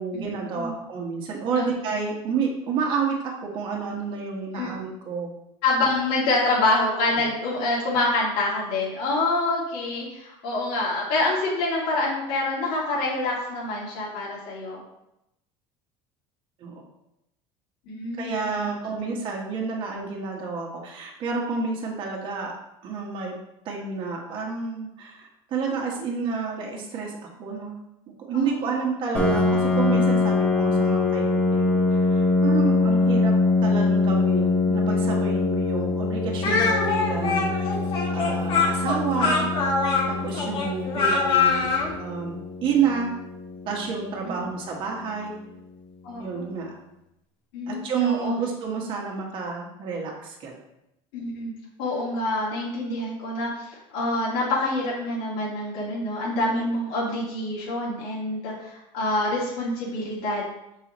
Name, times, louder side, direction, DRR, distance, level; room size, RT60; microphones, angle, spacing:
voice 1, 0.0-5.3 7.1-7.2 16.6-16.9 18.2-22.5 22.8-23.3 23.6-27.8 28.2-33.3 33.6-37.6 38.1-39.5 40.1-41.7 41.9-43.1 43.6-45.3 46.1-46.7 47.7-50.6, right 5 dB, 45° right, -1 dB, 1.5 m, -29 dB
voice 2, 5.6-14.8 17.9-18.4 28.3-28.5 44.2-44.3 46.0-46.5 47.5-48.3 51.1-51.5 51.8-60.4, left 2 dB, 85° left, -7 dB, 2.5 m, -26 dB
Piano, 29.1-44.6, left 3 dB, 10° left, 1.4 m, -24 dB
Speech, 36.4-41.9, left 4 dB, 50° left, 1.7 m, -23 dB
6.9 x 5.5 x 3.1 m, 0.86 s
cardioid pair, 145°, 12 cm